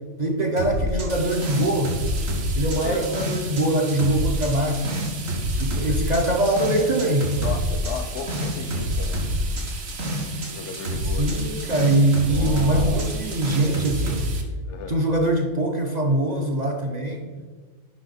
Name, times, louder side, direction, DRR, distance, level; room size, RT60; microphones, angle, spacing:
voice 1, 0.2-1.9 2.6-5.0 5.5-7.3 11.1-14.3 14.9-17.2, right 1 dB, 45° right, 1 dB, 0.6 m, -23 dB
sound 1, 0.6-3.6 3.9-10.5 10.7-14.3, equal, 80° right, 2.0 m, -27 dB
sound 2, 1.1-14.4, right 5 dB, 65° right, 1.2 m, -38 dB
voice 2, 7.4-9.2 10.5-11.4 12.2-13.0 14.6-15.0, left 5 dB, 65° left, 8 dB, 0.9 m, -35 dB
8.1 x 5.2 x 4.1 m, 1.5 s
omnidirectional pair, 1.3 m